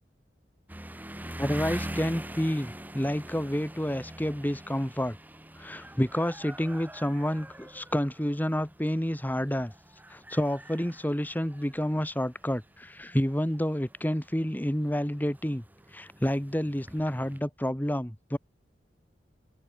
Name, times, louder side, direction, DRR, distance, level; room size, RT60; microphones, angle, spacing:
sound 1, 0.7-17.4, right 1 dB, 10° right, 2.0 m, -44 dB
voice 1, 1.4-5.2 5.6-9.7 10.1-15.6 15.9-18.4, equal, 10° left, 2.0 m, -29 dB
open air
head